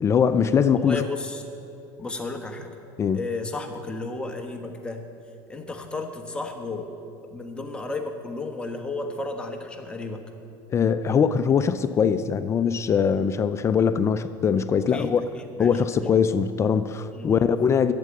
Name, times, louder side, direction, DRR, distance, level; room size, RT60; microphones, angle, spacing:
voice 1, 0.0-1.0 3.0-3.2 10.7-15.2 15.6-17.9, left 7 dB, 30° left, 12 dB, 0.4 m, -22 dB
voice 2, 0.8-1.4 2.0-2.7 3.1-5.1 5.5-6.9 7.3-10.3 14.9-15.7 17.1-17.5, left 3 dB, 10° left, 3 dB, 1.3 m, -33 dB
12.0 x 7.5 x 8.6 m, 2.7 s
supercardioid pair, 125°, 10 cm